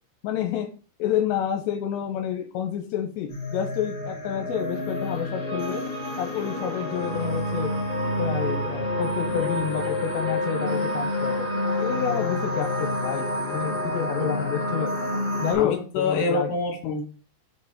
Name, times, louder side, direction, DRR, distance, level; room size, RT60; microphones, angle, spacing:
voice 1, 0.2-0.7 1.0-5.8 6.2-7.7 8.2-14.9 15.4-16.5, left 9 dB, 80° left, 3 dB, 2.8 m, -29 dB
sound 1, 3.3-15.5, left 1 dB, 35° left, 1.8 m, -28 dB
voice 2, 15.5-17.0, left 3 dB, 55° left, 0 dB, 3.4 m, -26 dB
6.2 x 4.8 x 5.0 m, 0.39 s
omnidirectional pair, 5.1 m